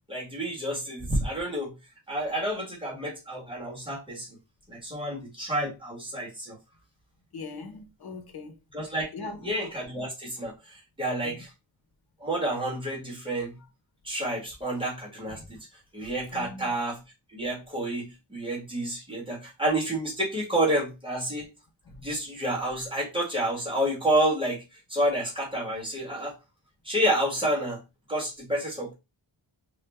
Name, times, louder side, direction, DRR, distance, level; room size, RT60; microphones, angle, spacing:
voice 1, 0.1-1.7 2.1-4.3 4.7-6.6 8.7-10.5 11.0-11.5 12.2-13.5 14.0-15.6 15.9-17.0 17.3-21.5 22.0-24.6 24.9-26.3 26.9-27.8 28.1-28.9, right 1 dB, 10° right, 1.8 m, -29 dB
voice 2, 7.3-8.6 9.1-9.5 11.2-11.4 15.3-15.6 16.3-16.7 21.9-22.0, left 3 dB, 55° left, 1.0 m, -41 dB
3.9 x 2.6 x 3.5 m
wide cardioid pair, 170°, 46 cm